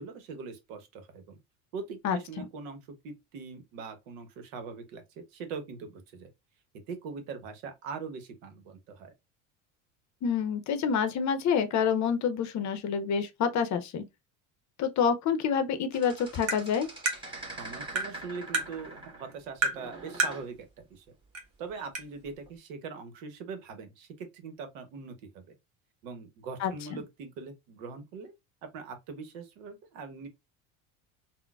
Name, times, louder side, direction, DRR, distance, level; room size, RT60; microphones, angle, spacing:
voice 1, 0.0-1.4 1.7-6.3 6.9-9.1 17.6-21.1 21.6-25.5 26.0-28.3 28.6-30.3, right 5 dB, 70° right, 1.0 m, -42 dB
voice 2, 2.0-2.5 10.2-14.0 14.8-16.9 26.6-26.7, left 7 dB, 40° left, 0.7 m, -27 dB
sound 1, 15.9-19.4 19.7-20.5 22.2-22.5, right 2 dB, 10° right, 1.4 m, -44 dB
Tap, 16.5-16.6 17.1-17.2 17.9-18.1 18.5-18.7 19.6-19.8 20.2-20.4 21.3-21.4 21.9-22.0, right 3 dB, 35° right, 1.2 m, -28 dB
3.7 x 2.2 x 2.3 m
hypercardioid pair, 80°, 42 cm